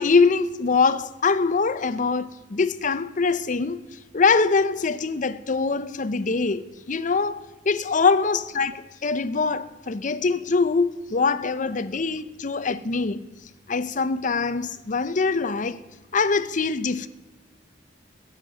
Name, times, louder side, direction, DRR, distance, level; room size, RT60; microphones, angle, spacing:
voice 1, 0.0-3.8 4.1-6.6 6.9-13.3 13.7-15.8 16.1-17.1, left 4 dB, 45° left, 0.6 m, -23 dB
17.0 x 7.4 x 7.6 m
head